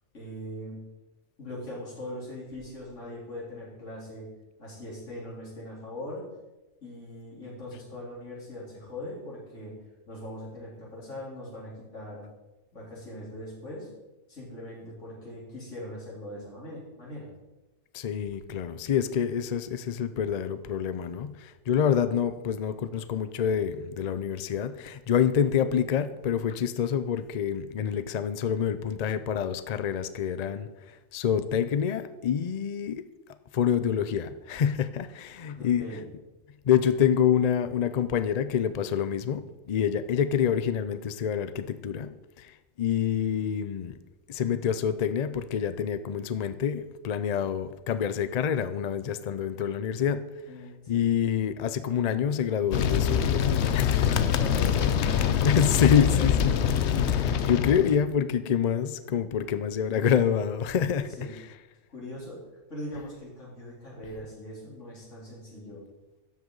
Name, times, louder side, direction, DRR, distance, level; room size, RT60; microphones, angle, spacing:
voice 1, 0.1-0.8 1.4-4.3 4.6-6.3 6.8-9.8 10.1-12.3 12.7-13.9 14.3-17.3 35.4-36.0 50.5-51.1 54.3-55.5 55.8-56.7 60.7-61.3 61.9-62.4 62.7-65.8, left 1 dB, 85° left, -6 dB, 4.0 m, -40 dB
voice 2, 17.9-33.0 33.5-35.9 36.6-42.5 42.8-44.0 44.3-50.3 50.9-54.2 55.4-56.5 57.0-61.3, left 8 dB, 50° left, 12 dB, 0.5 m, -27 dB
sound 1, 52.7-58.0, left 8 dB, 70° left, 0.9 m, -24 dB
12.5 x 7.9 x 3.9 m, 1.1 s
omnidirectional pair, 1.2 m